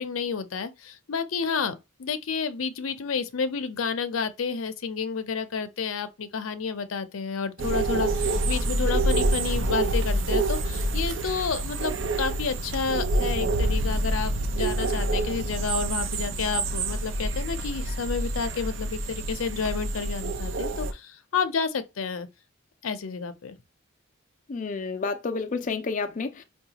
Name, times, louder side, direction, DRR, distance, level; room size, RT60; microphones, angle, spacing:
voice 1, 0.0-22.3 22.8-23.6, left 5 dB, 85° left, 0.6 m, -30 dB
sound 1, 7.6-20.9, right 2 dB, 65° right, 0.5 m, -27 dB
voice 2, 24.5-26.4, left 4 dB, 40° left, 0.4 m, -30 dB
4.7 x 2.3 x 2.8 m
head